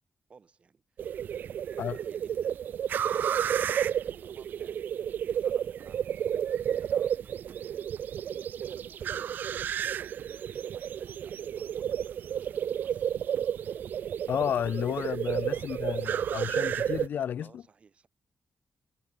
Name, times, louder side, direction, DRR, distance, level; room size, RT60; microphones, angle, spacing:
voice 1, 0.3-7.9 8.3-13.1 14.7-14.8 15.5-15.7 17.4-18.1, right 5 dB, 40° right, 5.9 m, -57 dB
sound 1, 1.0-17.1, right 9 dB, 85° right, 0.6 m, -31 dB
voice 2, 14.3-17.6, left 9 dB, 90° left, 1.4 m, -32 dB
wide cardioid pair, 170°, 3 cm